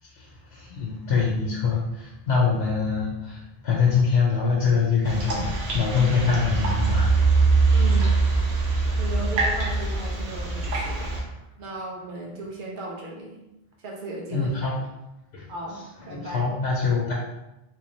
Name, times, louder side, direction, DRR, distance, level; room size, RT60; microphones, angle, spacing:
voice 1, 0.0-7.1 7.9-8.0 14.3-14.8 15.3-15.5 16.1-17.1, left 5 dB, 90° left, -3 dB, 0.9 m, -24 dB
sound 1, 5.1-11.2, right 3 dB, 85° right, 1.0 m, -23 dB
voice 2, 7.7-8.1 9.0-11.1 11.6-13.4 13.8-14.7 15.5-15.8 16.1-16.5, right 2 dB, 55° right, -2 dB, 1.0 m, -36 dB
3.7 x 3.0 x 2.7 m, 0.96 s
omnidirectional pair, 1.0 m